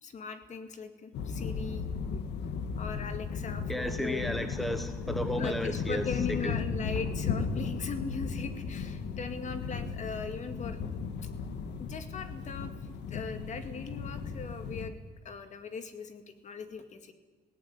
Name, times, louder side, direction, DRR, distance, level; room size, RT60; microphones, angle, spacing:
voice 1, 0.0-1.8 2.8-4.3 5.4-10.8 11.8-12.7 13.1-17.1, left 5 dB, 45° left, 9 dB, 2.2 m, -39 dB
sound 1, 1.1-14.9, left 5 dB, 85° left, 1.9 m, -35 dB
voice 2, 3.7-6.0 6.4-6.5, equal, ahead, 8 dB, 1.2 m, -33 dB
18.0 x 17.0 x 9.7 m, 1.2 s
cardioid pair, 150°, 17 cm